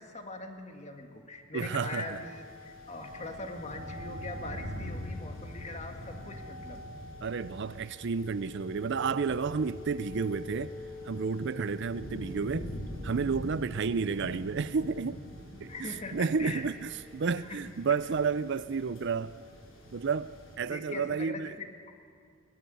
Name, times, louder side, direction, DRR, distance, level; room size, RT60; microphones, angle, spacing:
voice 1, 0.0-6.8 15.7-16.6 17.4-17.6 20.7-21.9, left 2 dB, 35° left, 2.0 m, -42 dB
voice 2, 1.5-2.2 7.2-10.7 11.0-12.7 13.0-15.2 15.6-19.4 19.9-21.5, right 5 dB, 60° right, 0.5 m, -31 dB
sound 1, 1.6-20.6, left 1 dB, 85° left, 6.5 m, -43 dB
21.5 x 20.0 x 9.3 m
head